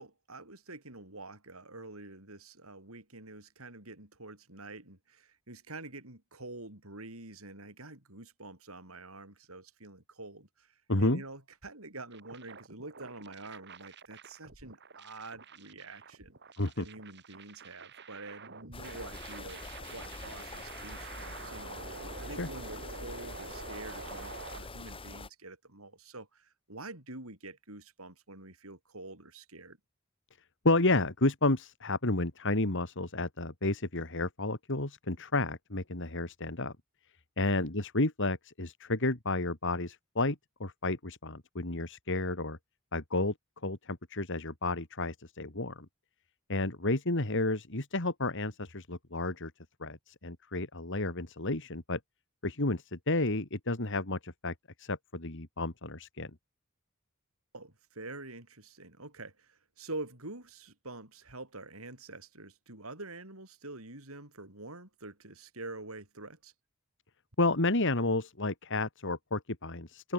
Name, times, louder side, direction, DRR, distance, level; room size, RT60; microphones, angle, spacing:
voice 1, 0.0-16.4 16.8-19.6 19.9-29.8 37.5-37.6 57.5-66.5, right 2 dB, 75° right, 7.6 m, -46 dB
voice 2, 10.9-11.2 16.6-16.8 22.4-22.5 30.6-36.7 37.4-42.6 42.9-43.3 43.6-45.9 46.5-49.5 49.8-52.0 52.4-56.3 67.4-70.1, left 2 dB, 60° left, 2.8 m, -31 dB
sound 1, 12.1-24.6, right 4 dB, 55° right, 4.3 m, -48 dB
sound 2, 18.7-25.3, left 2 dB, 25° left, 3.5 m, -44 dB
head